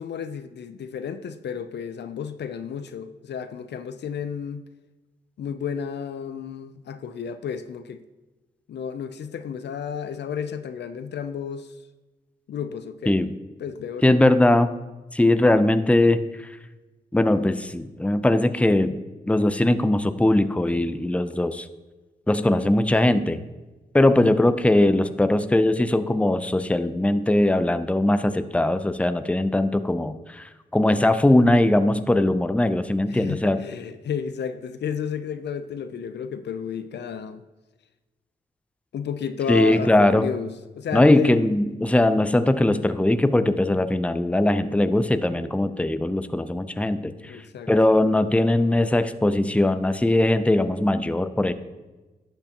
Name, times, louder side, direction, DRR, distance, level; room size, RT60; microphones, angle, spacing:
voice 1, 0.0-4.7 5.4-8.0 8.7-11.7 12.5-13.2 13.6-14.2 33.1-37.4 38.9-41.3 47.2-47.7, left 7 dB, 70° left, 0.5 m, -32 dB
voice 2, 14.0-14.7 15.1-16.6 17.1-19.0 19.3-21.7 22.3-23.4 23.9-33.6 39.5-40.3 40.9-47.4 47.7-51.5, left 1 dB, 5° left, 0.6 m, -20 dB
11.5 x 6.7 x 2.9 m
supercardioid pair, 40°, 18 cm